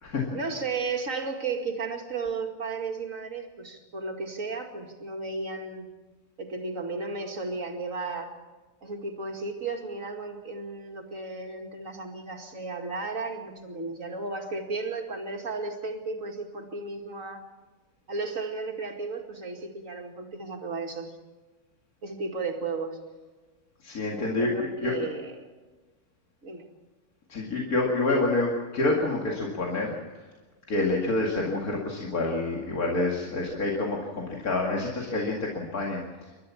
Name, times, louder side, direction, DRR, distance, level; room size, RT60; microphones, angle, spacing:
voice 1, 0.3-5.9 6.4-8.3 8.8-17.4 18.1-21.1 22.0-23.0 24.2-25.5 26.4-26.6, right 3 dB, 60° right, 3 dB, 2.7 m, -34 dB
voice 2, 23.8-25.0 27.3-30.2 30.7-36.0, left 2 dB, 80° left, -2 dB, 2.8 m, -27 dB
29.0 x 13.0 x 7.2 m, 1.3 s
omnidirectional pair, 1.5 m